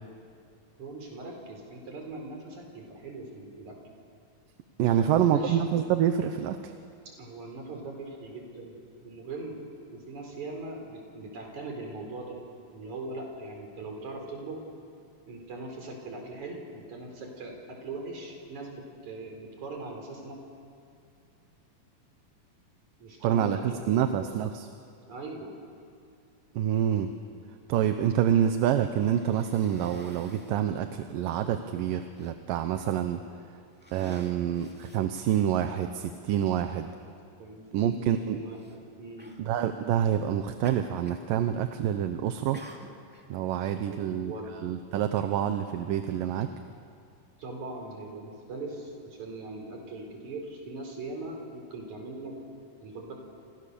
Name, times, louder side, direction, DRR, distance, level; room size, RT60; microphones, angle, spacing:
voice 1, 0.8-3.8 4.9-5.6 7.2-9.6 9.9-12.4 12.7-14.6 15.3-20.4 23.0-24.3 25.1-25.6 37.4-38.0 38.3-39.3 43.9-44.5 47.4-52.4 52.8-53.1, right 2 dB, 60° right, 2 dB, 5.6 m, -40 dB
voice 2, 4.8-6.7 23.2-24.7 26.6-27.1 27.7-33.2 33.9-36.9 37.7-38.4 39.4-42.6 43.3-44.3 44.6-46.5, right 10 dB, 80° right, 8 dB, 2.6 m, -27 dB
Cough, 29.0-30.6 31.4-31.5 31.8-32.3 33.1-33.3 33.7-35.7 36.6-36.7 38.5-38.8 39.2-39.4 40.6-41.3 41.6-42.0 42.5-43.3, right 1 dB, 5° right, 1.7 m, -50 dB
29.5 x 27.5 x 6.9 m, 2.3 s
omnidirectional pair, 3.9 m